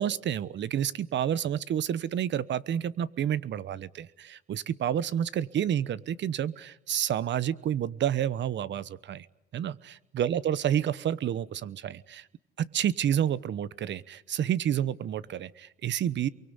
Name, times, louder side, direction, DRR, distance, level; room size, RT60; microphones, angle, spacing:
voice 1, 0.0-9.3 9.5-12.3 12.6-16.3, right 10 dB, 65° right, 18 dB, 1.1 m, -29 dB
29.0 x 23.5 x 8.2 m, 0.79 s
cardioid pair, 90°, 20 cm